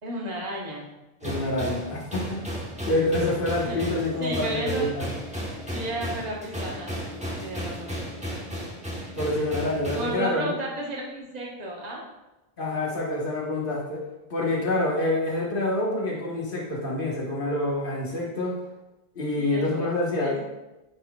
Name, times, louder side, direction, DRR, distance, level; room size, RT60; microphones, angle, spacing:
voice 1, 0.0-0.8 3.6-4.9 5.7-7.9 9.9-12.0 19.3-19.9 20.2-20.4, right 1 dB, 40° right, -3 dB, 1.2 m, -34 dB
voice 2, 1.2-2.4 2.9-5.1 9.2-10.5 12.6-14.0 14.3-18.6 19.1-20.4, left 1 dB, 55° left, -3 dB, 1.5 m, -27 dB
sound 1, 1.2-10.1, equal, 5° right, 1.1 m, -34 dB
9.5 x 4.2 x 2.3 m, 1.0 s
omnidirectional pair, 1.0 m